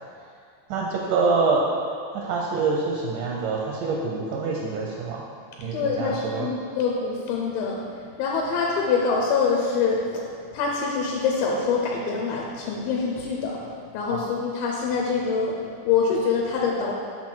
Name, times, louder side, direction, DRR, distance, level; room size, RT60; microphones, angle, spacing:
voice 1, 0.7-1.6 2.1-5.2 5.6-6.5 14.1-14.2, right 4 dB, 80° right, -2 dB, 1.9 m, -25 dB
voice 2, 5.7-10.2 10.5-13.6 13.9-15.6 15.8-16.9, left 5 dB, 80° left, -2 dB, 2.4 m, -25 dB
6.0 x 6.0 x 4.4 m, 2.2 s
omnidirectional pair, 4.4 m